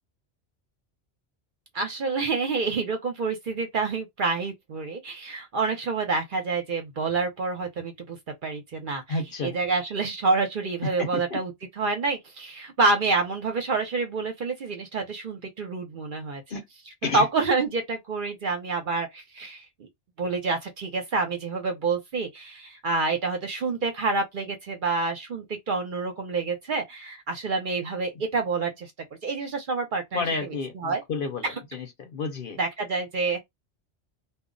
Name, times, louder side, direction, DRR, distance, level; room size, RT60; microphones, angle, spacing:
voice 1, 1.7-11.5 11.8-16.4 17.1-19.9 20.2-28.9 29.2-30.2 30.7-31.0 32.6-33.4, right 4 dB, 55° right, 0.7 m, -28 dB
voice 2, 9.1-9.6 10.8-11.4 16.5-16.6 17.0-17.3 30.1-32.6, left 3 dB, 55° left, 0.8 m, -31 dB
2.2 x 2.0 x 3.7 m
omnidirectional pair, 1.2 m